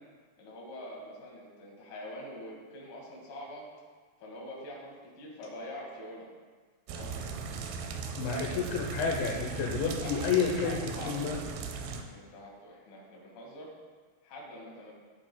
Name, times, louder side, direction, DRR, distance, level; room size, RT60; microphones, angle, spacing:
voice 1, 0.4-3.7 4.2-6.3 6.9-7.3 8.4-8.5 9.4-11.4 11.9-13.7 14.2-14.9, left 1 dB, 55° left, -3 dB, 3.3 m, -44 dB
sound 1, 6.9-12.0, right 5 dB, 80° right, 2.3 m, -38 dB
voice 2, 7.8-11.4, left 6 dB, 80° left, 0 dB, 3.1 m, -31 dB
14.0 x 8.7 x 2.3 m, 1.5 s
omnidirectional pair, 5.2 m